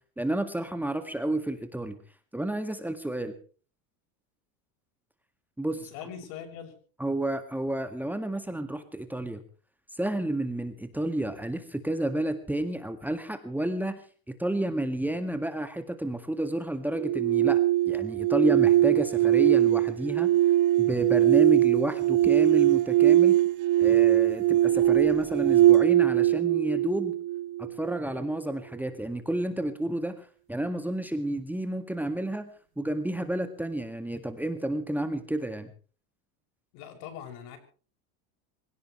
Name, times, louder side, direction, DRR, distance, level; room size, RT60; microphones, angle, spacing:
voice 1, 0.2-2.0 2.3-3.3 5.6-5.9 7.0-9.4 10.0-14.0 14.4-20.3 20.8-23.4 23.8-27.1 27.6-32.5 32.8-35.7, right 1 dB, 5° right, 8 dB, 1.9 m, -30 dB
voice 2, 5.8-6.7 36.7-37.6, left 8 dB, 70° left, 7 dB, 6.6 m, -41 dB
sound 1, 16.9-28.0, right 13 dB, 45° right, 1.3 m, -22 dB
26.0 x 17.0 x 3.2 m, 0.40 s
supercardioid pair, 125°, 42 cm